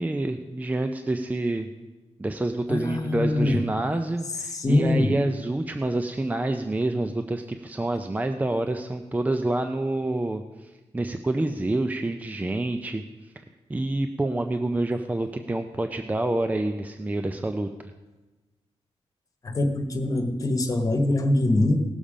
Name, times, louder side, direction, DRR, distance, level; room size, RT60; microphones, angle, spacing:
voice 1, 0.0-1.7 2.2-13.0 13.4-13.5 13.7-17.7, right 2 dB, 15° right, 7 dB, 0.5 m, -27 dB
voice 2, 2.7-3.6 4.4-5.1 19.4-21.8, left 2 dB, 35° left, 5 dB, 1.3 m, -23 dB
18.0 x 7.0 x 5.0 m, 1.2 s
wide cardioid pair, 130°, 11 cm